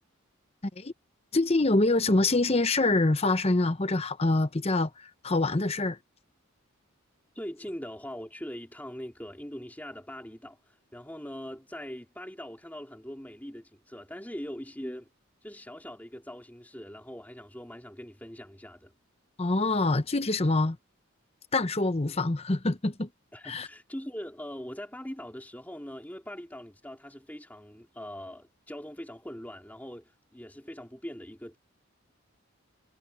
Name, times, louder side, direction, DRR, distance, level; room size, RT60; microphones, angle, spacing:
voice 1, 1.3-4.9 5.2-6.0 19.4-20.8 21.5-23.1 23.4-23.7, left 2 dB, 30° left, 0.8 m, -25 dB
voice 2, 7.3-15.1 15.4-18.9 23.3-31.6, equal, 10° left, 3.0 m, -42 dB
head